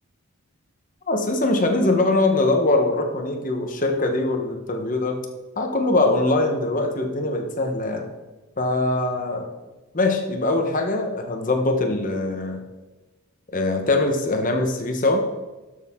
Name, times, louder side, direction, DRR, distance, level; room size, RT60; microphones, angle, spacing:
voice 1, 1.1-5.2 5.6-8.1 8.6-9.5 9.9-12.6 13.5-15.2, left 2 dB, 35° left, 4 dB, 1.0 m, -22 dB
13.0 x 6.5 x 3.7 m, 1.2 s
head